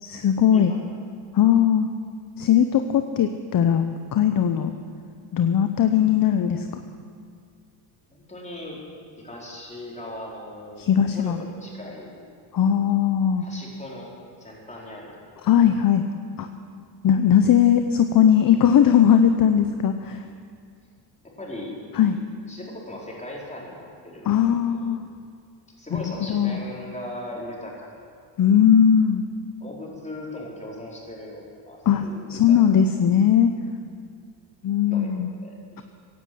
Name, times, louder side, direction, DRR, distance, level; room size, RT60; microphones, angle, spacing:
voice 1, 0.0-0.7 1.3-1.9 2.4-3.9 4.1-4.7 5.3-6.7 10.8-11.4 12.5-13.4 15.4-16.0 16.4-16.5 17.0-20.2 21.9-22.1 24.3-25.0 25.9-26.0 26.3-26.6 28.4-29.2 31.8-33.5 34.6-35.3, left 9 dB, 45° left, 7 dB, 0.9 m, -19 dB
voice 2, 8.1-8.8 9.2-10.8 11.1-12.2 13.4-14.1 14.4-15.1 21.4-22.2 22.5-24.9 25.7-28.0 29.6-32.8 34.9-35.1 35.4-35.8, left 1 dB, 15° left, -4 dB, 4.6 m, -38 dB
16.5 x 11.0 x 7.9 m, 2.3 s
cardioid pair, 100°, 48 cm